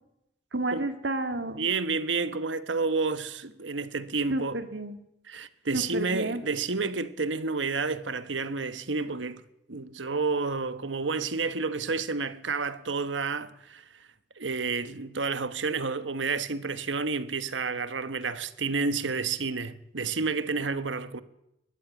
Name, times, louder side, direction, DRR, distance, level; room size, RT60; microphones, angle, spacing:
voice 1, 0.5-1.7 4.3-5.0 5.7-6.4, right 2 dB, 75° right, 2.1 m, -31 dB
voice 2, 1.5-4.6 5.3-9.4 9.7-14.0 14.4-21.2, right 4 dB, 90° right, 1.3 m, -30 dB
22.0 x 14.5 x 9.2 m
head